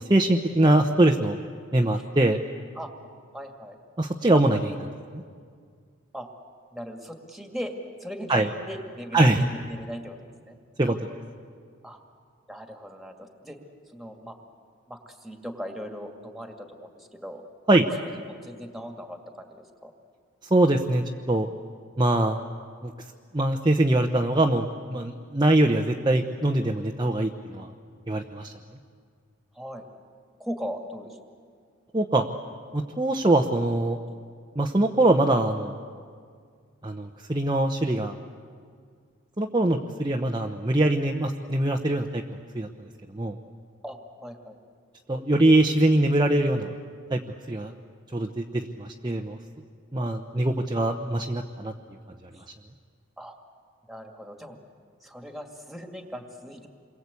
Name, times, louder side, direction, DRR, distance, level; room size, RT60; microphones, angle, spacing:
voice 1, 0.0-1.4 1.7-2.4 4.0-5.2 8.3-8.5 9.1-9.5 10.8-11.0 17.7-17.9 20.5-21.5 22.0-22.4 22.8-22.9 23.3-27.7 28.1-28.5 31.9-32.2 32.7-34.0 34.6-35.8 36.8-38.2 39.4-42.2 42.5-42.7 43.1-43.4 45.1-46.7 47.1-47.2 47.5-47.7 48.1-49.4 49.9-51.7, right 1 dB, 20° right, 1 dB, 0.8 m, -23 dB
voice 2, 3.3-3.8 6.1-6.3 6.7-10.6 11.8-12.0 12.5-13.6 13.9-14.4 14.9-17.4 18.0-19.4 19.8-19.9 29.5-29.9 30.4-31.2 43.8-44.6 52.3-52.4 53.2-53.4 53.9-54.6 55.0-56.7, equal, ahead, 4 dB, 2.1 m, -39 dB
28.0 x 22.5 x 8.4 m, 2.1 s
head